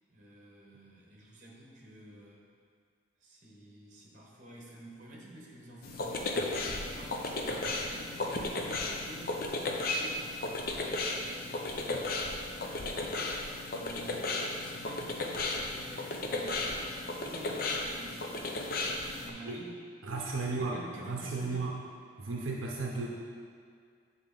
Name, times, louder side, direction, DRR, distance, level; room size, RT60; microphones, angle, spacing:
voice 1, 0.1-2.4 3.2-19.7 20.3-21.7, right 1 dB, 40° right, -3 dB, 1.1 m, -50 dB
sound 1, 5.8-19.3, left 2 dB, 45° left, 0.5 m, -34 dB
voice 2, 20.0-21.7 22.2-23.1, right 3 dB, 75° right, -2 dB, 0.6 m, -34 dB
7.7 x 3.9 x 3.8 m, 2.1 s
head